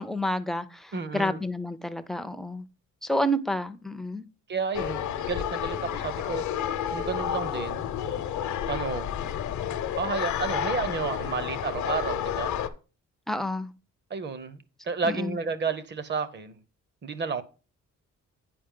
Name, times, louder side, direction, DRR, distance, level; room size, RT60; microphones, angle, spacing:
voice 1, 0.0-2.6 3.0-4.2 13.3-13.7 15.0-15.4, equal, ahead, 0.4 m, -29 dB
voice 2, 0.9-1.4 4.5-6.6 6.9-7.8 8.7-9.1 9.9-12.6 14.1-16.6 17.0-17.4, right 5 dB, 40° right, 0.7 m, -31 dB
sound 1, 4.7-12.7, left 10 dB, 75° left, 0.8 m, -30 dB
8.7 x 5.2 x 3.6 m
wide cardioid pair, 165°, 29 cm